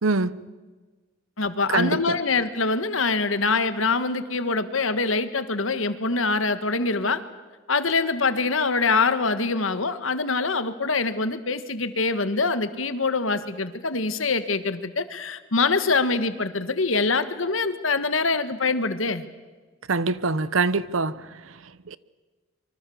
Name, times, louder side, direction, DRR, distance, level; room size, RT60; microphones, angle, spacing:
voice 1, 0.0-0.4 1.7-2.2 19.9-22.0, right 3 dB, 85° right, 0.9 m, -25 dB
voice 2, 1.4-7.2 7.7-19.2, left 4 dB, 75° left, 1.6 m, -24 dB
25.5 x 24.0 x 7.2 m
head